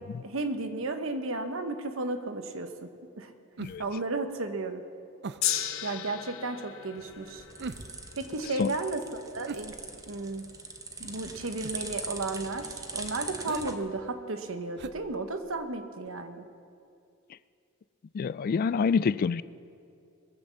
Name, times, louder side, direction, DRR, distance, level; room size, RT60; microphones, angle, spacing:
voice 1, 0.2-2.7 3.2-3.3 3.8-4.8 5.8-7.4 8.2-9.0 9.3-9.7 10.1-10.4 11.0-12.7 12.9-16.4, right 2 dB, 70° right, 7 dB, 1.1 m, -33 dB
sound 1, 3.6-4.0 5.2-5.6 7.6-8.1 9.5-10.2 11.6-12.0 13.4-13.7 14.8-15.7 16.0-16.1, right 4 dB, 55° right, 0.5 m, -41 dB
Gong, 5.4-11.8 12.6-12.7, left 11 dB, 75° left, 0.9 m, -37 dB
sound 2, 7.0-13.7, right 3 dB, 15° right, 0.9 m, -41 dB
voice 2, 18.1-19.4, left 5 dB, 45° left, 17 dB, 0.3 m, -27 dB
21.0 x 7.9 x 7.2 m, 2.6 s
head